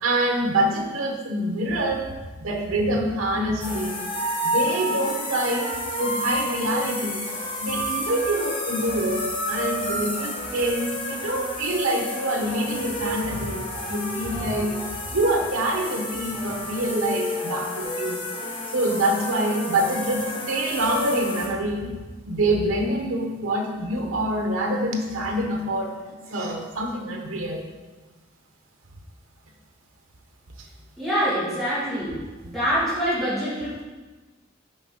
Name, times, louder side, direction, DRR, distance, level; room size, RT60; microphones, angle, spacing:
voice 1, 0.0-2.1 2.4-4.0 4.4-7.3 7.6-14.7 15.1-18.2 18.7-22.0 22.3-27.7, right 1 dB, 90° right, 2 dB, 0.9 m, -26 dB
sound 1, 3.6-21.5, left 1 dB, 25° left, 1.1 m, -30 dB
voice 2, 31.0-32.2 32.4-33.8, equal, ahead, -12 dB, 1.6 m, -25 dB
6.5 x 5.0 x 3.7 m, 1.3 s
head